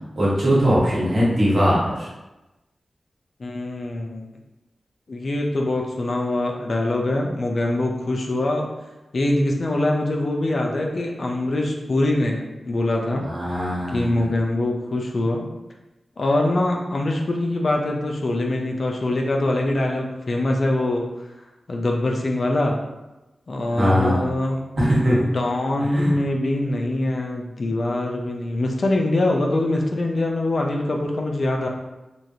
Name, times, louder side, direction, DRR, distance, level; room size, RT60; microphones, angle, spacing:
voice 1, 0.2-2.1 13.2-14.3 23.7-24.2 24.8-25.3 25.8-26.1, equal, 65° right, -7 dB, 1.2 m, -20 dB
voice 2, 3.4-4.3 5.1-8.7 9.1-13.3 13.9-15.5 16.2-21.0 21.7-22.8 23.5-24.6 25.3-31.7, left 1 dB, 65° left, 1 dB, 0.5 m, -23 dB
3.0 x 2.4 x 2.7 m, 1.0 s
cardioid pair, 45°, 0 cm